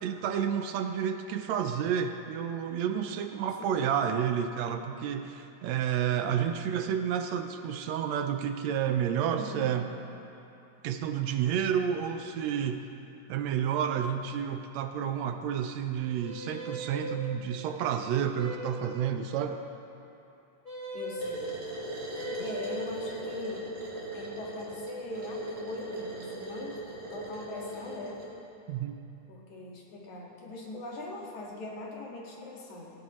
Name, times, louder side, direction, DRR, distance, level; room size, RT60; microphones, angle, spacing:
voice 1, 0.0-9.9 10.8-12.9 13.3-19.6 28.7-29.0, right 8 dB, 75° right, 7 dB, 1.8 m, -30 dB
voice 2, 9.4-9.8 16.3-16.7 20.9-21.7 22.4-23.7 24.1-26.8 27.1-28.2 29.3-32.9, left 1 dB, 80° left, -2 dB, 3.4 m, -41 dB
sound 1, 16.2-17.1 18.4-19.0 20.6-21.3 22.1-22.8, equal, 25° right, 3.2 m, -39 dB
sound 2, 21.2-28.3, right 1 dB, 55° right, 3.7 m, -39 dB
19.0 x 18.0 x 3.1 m, 2.8 s
omnidirectional pair, 3.3 m